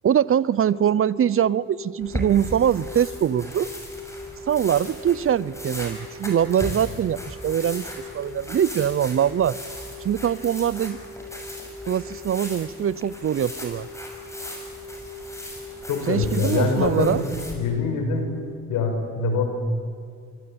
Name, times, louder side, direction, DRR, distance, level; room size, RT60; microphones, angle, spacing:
voice 1, 0.0-3.7 4.5-9.6 10.0-11.0 11.9-13.9 16.1-17.2, right 9 dB, 45° right, 21 dB, 0.7 m, -23 dB
sound 1, 0.5-18.6, left 2 dB, 65° left, 4.2 m, -41 dB
sound 2, 2.0-17.5, equal, 10° left, 6.7 m, -37 dB
voice 2, 15.9-17.1 17.6-18.3 18.7-19.4, left 4 dB, 90° left, 5 dB, 5.3 m, -24 dB
26.0 x 24.5 x 8.8 m, 2.2 s
cardioid pair, 90°, 30 cm